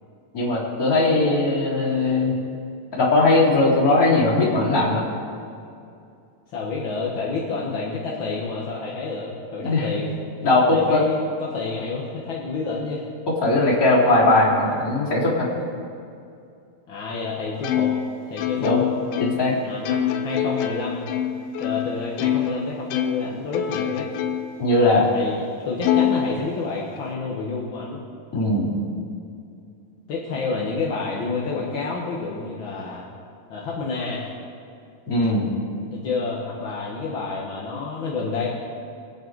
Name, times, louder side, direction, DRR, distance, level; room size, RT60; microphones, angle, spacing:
voice 1, 0.3-2.3 2.9-5.0 9.6-9.9 10.4-11.0 13.3-15.5 18.6-18.8 19.2-19.5 24.6-25.1 28.3-28.7 35.1-35.5, left 2 dB, 25° left, -7 dB, 3.6 m, -19 dB
voice 2, 6.5-10.1 10.7-13.1 16.9-17.9 18.3-18.8 19.6-21.1 21.6-24.1 25.1-28.0 30.1-33.1 33.5-34.3 35.9-38.5, left 4 dB, 50° left, -4 dB, 1.5 m, -29 dB
Plucked string instrument, 17.6-22.6 22.9-24.6 25.1-25.2 25.8-27.0, left 10 dB, 90° left, 2.6 m, -25 dB
24.0 x 9.3 x 4.8 m, 2.5 s
omnidirectional pair, 4.0 m